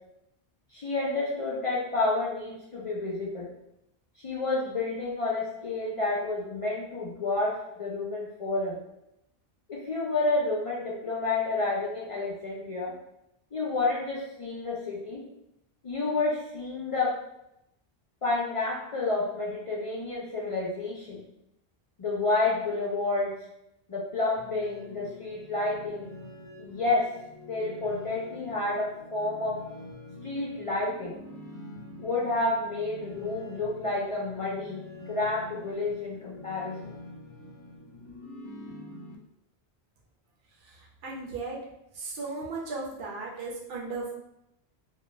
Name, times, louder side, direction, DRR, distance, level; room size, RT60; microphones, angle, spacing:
voice 1, 0.7-3.5 4.2-8.8 9.7-12.9 13.5-15.2 15.8-17.2 18.2-21.2 22.0-23.4 23.9-26.1 26.6-27.1 27.5-29.6 30.2-31.2 32.0-36.9, left 2 dB, 50° left, -5 dB, 0.4 m, -30 dB
sound 1, 24.4-39.2, left 1 dB, 85° left, 0.8 m, -46 dB
voice 2, 40.7-41.6 41.9-44.1, right 3 dB, 65° right, -2 dB, 0.7 m, -36 dB
2.3 x 2.1 x 3.1 m, 0.83 s
omnidirectional pair, 1.1 m